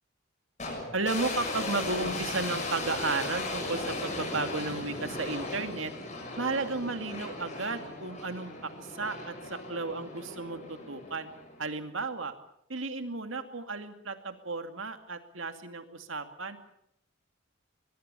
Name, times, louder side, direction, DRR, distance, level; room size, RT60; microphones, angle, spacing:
sound 1, 0.6-11.8, left 2 dB, 35° left, 6.7 m, -37 dB
voice 1, 0.9-5.9 6.4-11.3 11.6-12.3 12.7-16.6, right 3 dB, 75° right, 8 dB, 2.4 m, -34 dB
23.0 x 22.0 x 6.9 m, 0.76 s
head